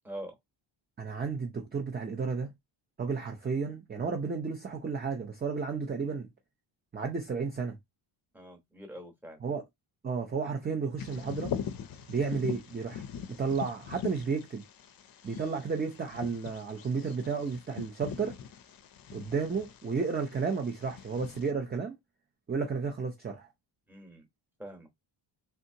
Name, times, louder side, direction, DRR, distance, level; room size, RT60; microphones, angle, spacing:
voice 1, 0.0-0.3 8.3-9.4 23.9-24.3 24.6-24.9, right 1 dB, 5° right, 0.9 m, -44 dB
voice 2, 1.0-2.5 3.0-6.3 6.9-7.8 9.4-9.6 10.0-11.5 12.1-13.0 13.4-14.6 15.2-18.3 19.1-21.9 22.5-23.5, right 5 dB, 20° right, 0.5 m, -32 dB
Bird vocalization bird call bird song, 11.0-21.5, left 8 dB, 45° left, 0.5 m, -42 dB
3.5 x 2.8 x 2.7 m
wide cardioid pair, 160°, 49 cm